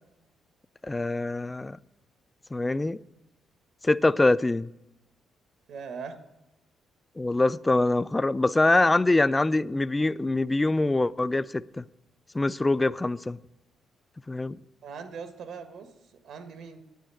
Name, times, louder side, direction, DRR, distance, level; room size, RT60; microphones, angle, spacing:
voice 1, 0.8-1.8 2.5-3.0 3.8-4.7 7.2-11.8 12.3-13.4 14.3-14.6, left 2 dB, 15° left, 0.3 m, -24 dB
voice 2, 5.7-6.2 14.8-15.9 16.2-16.8, right 5 dB, 75° right, 1.4 m, -40 dB
9.1 x 9.0 x 8.2 m
cardioid pair, 90°, 0 cm